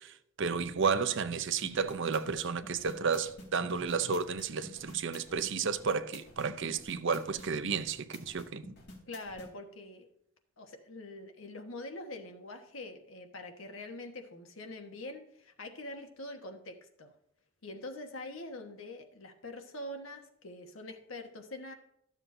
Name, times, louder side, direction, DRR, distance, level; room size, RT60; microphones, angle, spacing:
voice 1, 0.0-8.7, right 5 dB, 65° right, 0.7 m, -32 dB
sound 1, 1.6-9.5, left 2 dB, 55° left, 2.0 m, -51 dB
voice 2, 9.1-10.1 10.6-17.1 17.6-21.7, left 2 dB, 75° left, 1.3 m, -44 dB
12.5 x 7.3 x 2.7 m
head